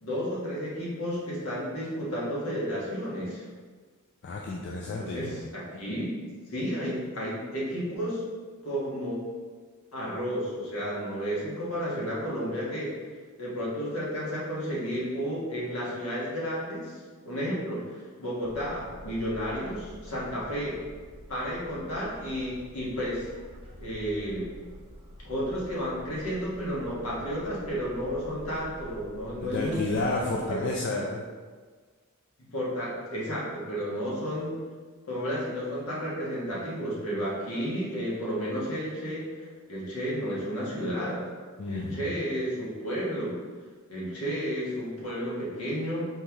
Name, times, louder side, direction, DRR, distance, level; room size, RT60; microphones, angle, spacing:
voice 1, 0.0-3.5 5.0-6.1 6.5-8.2 8.6-9.2 9.9-12.9 13.4-17.0 17.2-20.8 21.3-23.3 23.8-24.5 25.2-29.8 32.5-34.5 35.1-41.2 41.6-43.3 43.9-46.1, equal, 75° left, -6 dB, 1.4 m, -32 dB
voice 2, 4.2-5.3 29.4-31.2 41.6-42.1, left 2 dB, 55° left, -2 dB, 0.4 m, -31 dB
sound 1, 18.4-30.8, equal, 25° right, 0.6 m, -47 dB
4.3 x 3.6 x 3.0 m, 1.5 s
head